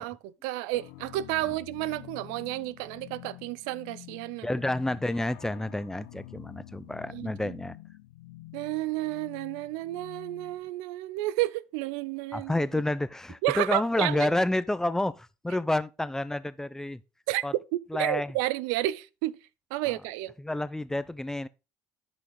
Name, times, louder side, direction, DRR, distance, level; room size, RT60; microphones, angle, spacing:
voice 1, 0.0-4.5 7.1-7.5 8.5-12.5 13.4-14.3 17.3-17.4 17.9-19.4 19.7-20.3, right 17 dB, 85° right, 0.4 m, -31 dB
sound 1, 0.7-10.7, left 17 dB, 90° left, 1.0 m, -48 dB
voice 2, 4.4-7.8 12.3-17.0 17.4-17.5 17.9-18.4 19.9-20.0 20.4-21.5, left 1 dB, 10° left, 0.6 m, -29 dB
11.0 x 5.3 x 3.9 m
supercardioid pair, 80°, 6 cm